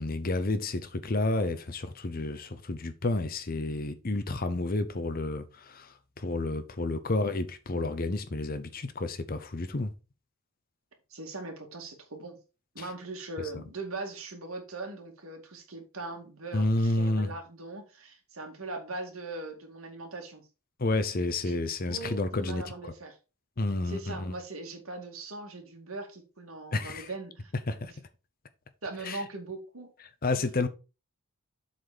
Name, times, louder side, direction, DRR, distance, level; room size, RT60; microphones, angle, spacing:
voice 1, 0.0-9.9 12.8-12.9 16.5-17.3 20.8-22.6 23.6-24.3 26.7-27.1 27.7-27.9 29.0-29.2 30.2-30.7, left 2 dB, 40° left, 0.7 m, -30 dB
voice 2, 11.1-12.4 12.7-20.5 21.4-23.2 23.9-27.5 27.9-28.0 28.8-29.9, right 2 dB, 65° right, 2.2 m, -40 dB
7.8 x 4.2 x 5.0 m
head